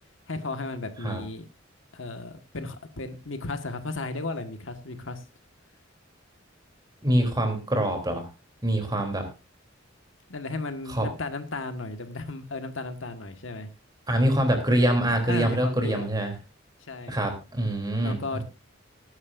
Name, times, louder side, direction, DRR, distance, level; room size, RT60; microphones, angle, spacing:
voice 1, 0.3-1.4 1.9-5.2 10.3-13.7 15.3-16.1 16.9-17.2 17.9-18.4, left 3 dB, 85° left, 8 dB, 1.6 m, -35 dB
voice 2, 7.0-8.3 8.6-9.2 10.9-11.0 14.1-16.3 17.1-18.2, right 1 dB, 20° right, 4 dB, 3.2 m, -24 dB
20.5 x 9.8 x 2.6 m, 0.28 s
head